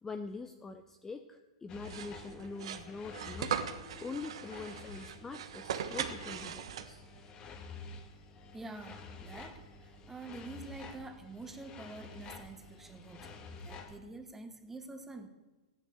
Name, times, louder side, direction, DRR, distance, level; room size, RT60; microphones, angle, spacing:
voice 1, 0.0-3.6 4.0-7.0, left 4 dB, 10° left, 7 dB, 0.8 m, -44 dB
sound 1, 1.7-14.0, left 3 dB, 30° left, 1.7 m, -49 dB
sound 2, 1.8-7.2, right 8 dB, 70° right, 1.4 m, -39 dB
voice 2, 8.5-15.3, right 3 dB, 10° right, 7 dB, 1.7 m, -47 dB
14.5 x 10.0 x 8.2 m, 1.2 s
hypercardioid pair, 130°, 3 cm